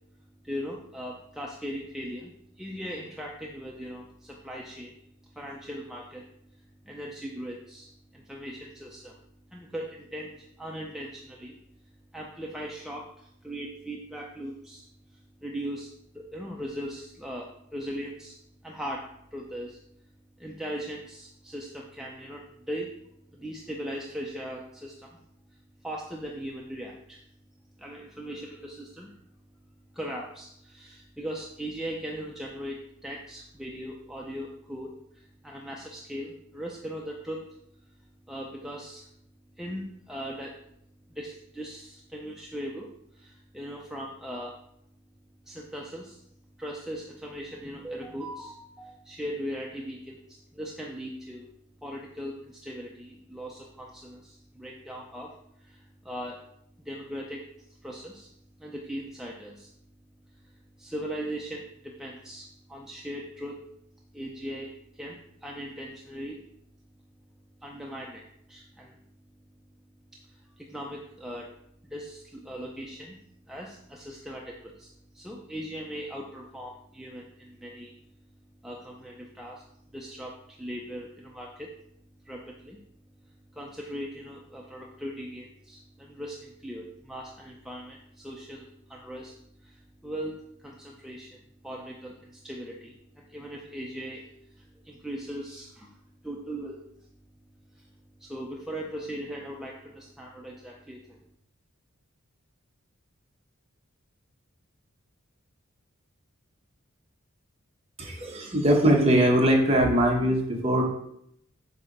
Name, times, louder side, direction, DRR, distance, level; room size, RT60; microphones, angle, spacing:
voice 1, 0.4-4.9 5.3-6.3 6.8-9.2 9.5-11.6 12.1-14.8 15.1-18.4 18.6-19.8 20.4-22.9 23.3-25.2 25.8-27.2 27.8-29.1 29.9-37.6 38.3-39.1 39.6-40.6 41.1-44.6 45.5-46.2 46.6-51.5 51.8-56.4 56.8-58.3 58.6-59.7 60.8-63.6 64.1-66.4 67.6-69.0 70.3-71.5 71.8-73.2 73.5-74.9 75.1-78.0 78.6-79.6 79.9-81.7 82.2-82.8 83.5-89.4 89.6-90.3 90.6-91.4 91.6-95.9 96.2-96.8 97.8-97.9 98.2-101.2, equal, ahead, -2 dB, 0.4 m, -39 dB
voice 2, 108.0-110.8, right 1 dB, 30° right, 0 dB, 1.0 m, -21 dB
7.7 x 2.8 x 5.2 m, 0.74 s
head